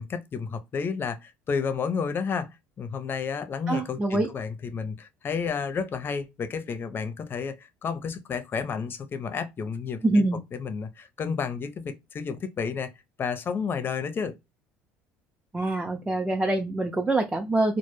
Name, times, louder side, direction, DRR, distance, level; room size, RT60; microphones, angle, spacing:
voice 1, 0.0-2.5 2.8-10.2 10.5-12.9 13.2-14.3, left 6 dB, 40° left, 0.5 m, -31 dB
voice 2, 3.7-4.3 10.0-10.4 15.5-17.8, right 2 dB, 15° right, 0.4 m, -25 dB
2.1 x 2.0 x 3.1 m
supercardioid pair, 80°, 6 cm